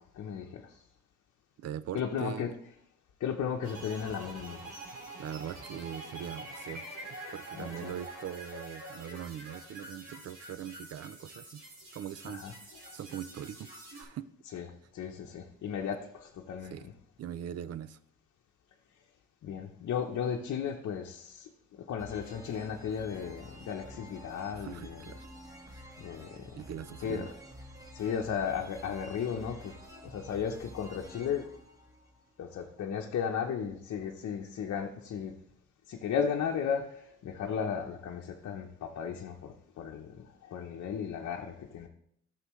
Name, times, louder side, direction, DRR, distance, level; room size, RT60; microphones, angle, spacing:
voice 1, 0.1-0.8 1.9-2.5 3.2-4.6 7.5-7.9 12.3-12.5 12.9-13.0 14.5-14.7 14.9-16.7 19.4-25.0 26.0-26.6 27.0-27.3 27.9-29.7 30.0-31.5 32.4-35.3 35.9-41.9, left 7 dB, 60° left, 0 dB, 0.9 m, -35 dB
voice 2, 1.6-2.5 5.2-6.8 7.3-11.6 11.9-12.4 12.9-13.7 14.0-14.3 15.2-15.3 16.6-16.9 17.2-18.0 24.5-25.3 25.7-25.9 26.5-27.3, right 10 dB, 55° right, 16 dB, 0.5 m, -41 dB
sound 1, 3.6-14.0, right 1 dB, 75° right, 3.8 m, -46 dB
sound 2, 22.0-32.6, equal, 10° right, 1.4 m, -50 dB
11.5 x 6.7 x 3.1 m, 0.70 s
cardioid pair, 90°, 30 cm